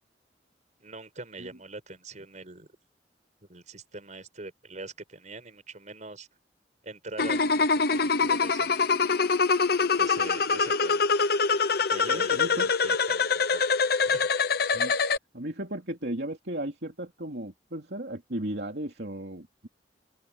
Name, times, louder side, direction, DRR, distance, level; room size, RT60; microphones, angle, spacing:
voice 1, 0.8-2.7 3.5-6.3 6.8-8.8 9.9-11.0 11.9-13.6 14.1-14.3, right 2 dB, 45° right, 5.0 m, -42 dB
sound 1, 7.2-15.2, left 4 dB, 60° left, 0.9 m, -24 dB
voice 2, 12.1-12.7 14.7-14.9 15.3-19.7, right 1 dB, 65° right, 3.1 m, -35 dB
open air
head